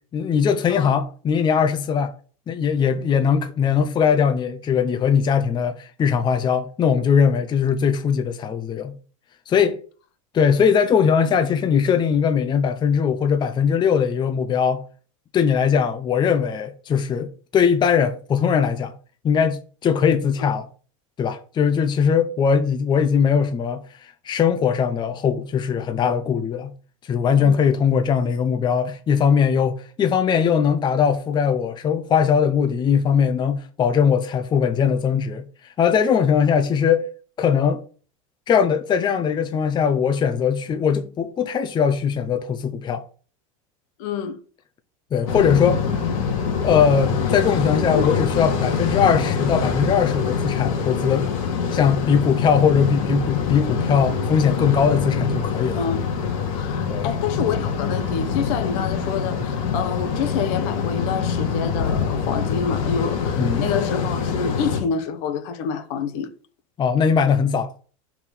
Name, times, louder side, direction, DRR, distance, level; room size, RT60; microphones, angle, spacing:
voice 1, 0.1-2.1 2.5-8.9 9.5-9.8 10.3-14.8 15.3-18.9 19.2-20.7 21.2-26.7 27.1-35.5 35.8-37.1 37.4-37.8 38.5-43.0 45.1-45.8 46.6-51.3 51.7-55.8 56.9-57.1 63.4-63.6 66.8-67.7, left 7 dB, 25° left, 0.7 m, -20 dB
voice 2, 44.0-44.4 48.0-48.1 55.8-56.0 56.5-66.3, left 6 dB, 65° left, 1.1 m, -27 dB
sound 1, 45.3-64.8, left 6 dB, 80° left, 2.3 m, -24 dB
5.3 x 4.9 x 5.6 m
supercardioid pair, 115°, 17 cm